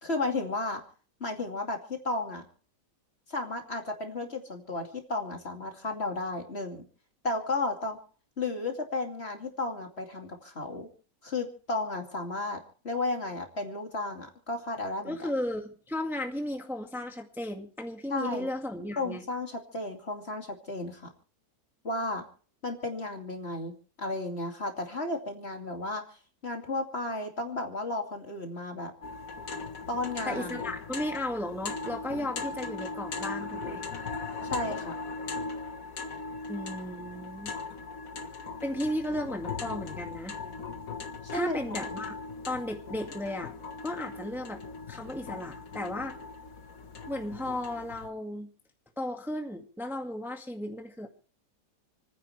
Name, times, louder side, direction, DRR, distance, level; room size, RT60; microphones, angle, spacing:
voice 1, 0.0-0.8 1.2-2.5 3.3-6.9 7.2-8.0 8.4-10.9 11.2-12.6 12.8-15.3 18.1-18.5 19.0-21.1 21.8-22.2 22.6-26.0 26.4-28.9 29.9-30.6 34.4-35.0 41.3-41.6, left 2 dB, 35° left, 3 dB, 2.8 m, -33 dB
voice 2, 15.0-19.2 30.3-33.8 36.5-37.5 38.6-40.4 41.3-42.2 42.5-43.5 43.8-44.6 44.9-46.1 47.1-48.5 49.0-51.1, left 1 dB, ahead, 3 dB, 1.9 m, -35 dB
sound 1, 29.0-48.1, left 4 dB, 50° left, 1.9 m, -39 dB
29.5 x 10.0 x 3.3 m, 0.42 s
omnidirectional pair, 1.9 m